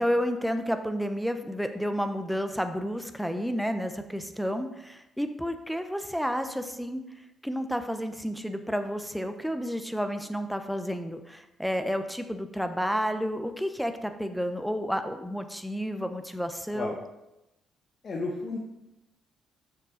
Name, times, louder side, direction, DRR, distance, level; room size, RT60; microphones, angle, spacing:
voice 1, 0.0-7.0 7.4-17.0, equal, ahead, 8 dB, 0.7 m, -31 dB
voice 2, 18.0-18.6, left 3 dB, 50° left, 0 dB, 1.0 m, -32 dB
6.6 x 6.5 x 3.8 m, 0.92 s
cardioid pair, 90°, 0 cm